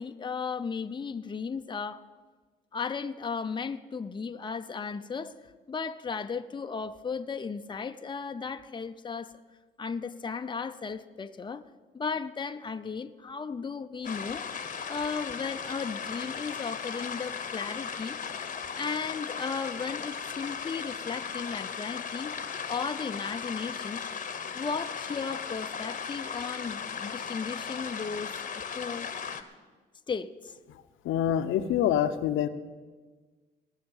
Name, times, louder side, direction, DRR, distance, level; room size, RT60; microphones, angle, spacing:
voice 1, 0.0-2.1 2.7-5.3 5.7-9.4 9.8-11.6 11.9-14.5 14.9-18.2 18.7-22.3 22.7-24.0 24.5-29.1 30.1-30.5, left 5 dB, 25° left, 0.7 m, -35 dB
sound 1, 14.0-29.4, left 6 dB, 40° left, 1.1 m, -37 dB
voice 2, 31.0-32.5, left 10 dB, 85° left, 0.8 m, -26 dB
19.0 x 6.4 x 8.9 m
cardioid pair, 90°, 20 cm